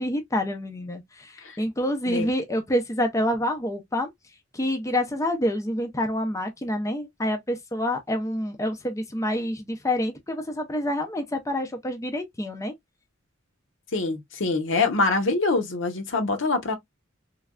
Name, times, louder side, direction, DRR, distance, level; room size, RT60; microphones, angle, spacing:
voice 1, 0.0-4.1 4.5-12.7, left 1 dB, 15° left, 0.5 m, -27 dB
voice 2, 13.9-16.8, left 3 dB, 70° left, 0.8 m, -24 dB
3.2 x 2.3 x 2.3 m
head